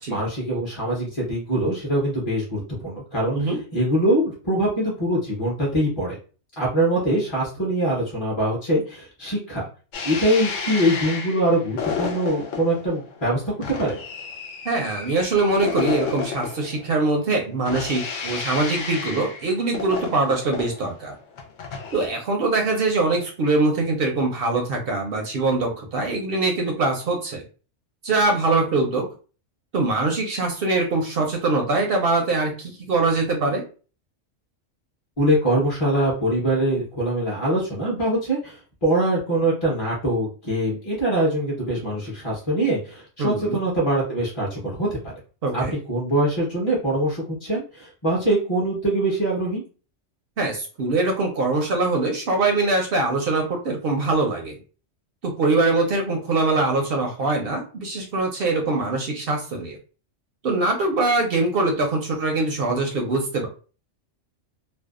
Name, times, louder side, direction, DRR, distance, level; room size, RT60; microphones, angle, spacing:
voice 1, 0.1-6.2 6.6-9.6 10.0-14.0 35.2-45.1 45.5-49.6, right 1 dB, 30° left, -5 dB, 0.6 m, -23 dB
sound 1, 9.9-22.1, left 5 dB, 85° left, 0.9 m, -32 dB
voice 2, 14.6-21.2 21.9-27.4 28.0-29.1 29.7-33.6 43.2-43.6 45.4-45.7 50.4-54.5 55.2-59.8 60.4-63.5, right 3 dB, 60° right, 2 dB, 0.6 m, -23 dB
2.6 x 2.1 x 2.3 m, 0.37 s
omnidirectional pair, 1.2 m